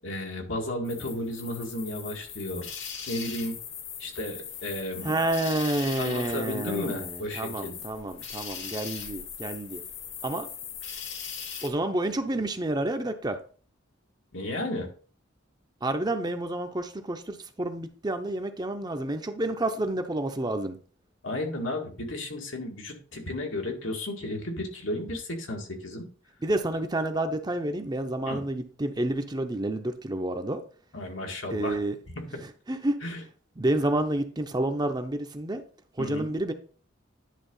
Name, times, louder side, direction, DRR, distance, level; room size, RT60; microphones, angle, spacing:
voice 1, 0.0-2.7 3.1-3.6 4.0-5.2 6.0-7.8 14.3-14.9 21.2-26.1 28.3-28.4 30.9-31.8 32.2-32.4 33.0-33.2 36.0-36.3, left 1 dB, 85° left, 2.1 m, -33 dB
sound 1, 0.8-11.7, left 7 dB, 65° left, 1.4 m, -39 dB
voice 2, 5.0-9.8 10.2-10.5 11.6-13.4 15.8-20.8 26.4-30.6 31.5-32.0 32.7-33.0 33.6-35.6 36.0-36.5, right 1 dB, 20° right, 0.7 m, -29 dB
10.0 x 3.6 x 5.5 m
head